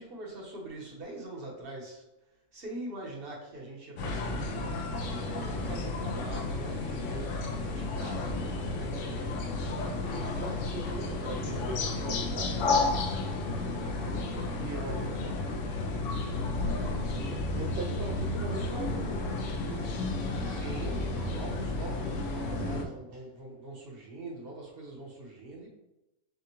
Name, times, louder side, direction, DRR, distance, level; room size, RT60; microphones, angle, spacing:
voice 1, 0.0-2.0 2.5-9.5 13.9-15.4 20.4-25.7, right 1 dB, 40° right, -2 dB, 1.1 m, -43 dB
sound 1, 4.0-22.8, left 2 dB, 65° left, 0.8 m, -32 dB
voice 2, 10.1-12.7 14.1-15.4 16.7-19.3, right 2 dB, 70° right, 0 dB, 0.6 m, -41 dB
6.6 x 2.3 x 2.9 m, 0.99 s
omnidirectional pair, 1.6 m